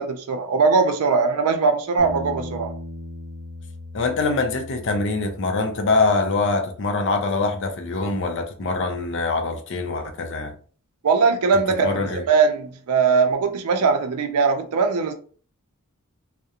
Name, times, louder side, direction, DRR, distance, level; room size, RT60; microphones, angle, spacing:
voice 1, 0.0-2.7 11.0-15.1, right 5 dB, 85° right, 0.4 m, -20 dB
Bass guitar, 2.0-8.2, left 1 dB, 15° right, 0.7 m, -39 dB
voice 2, 3.9-10.5 11.8-12.2, left 3 dB, 55° left, 0.5 m, -24 dB
2.4 x 2.1 x 2.8 m
head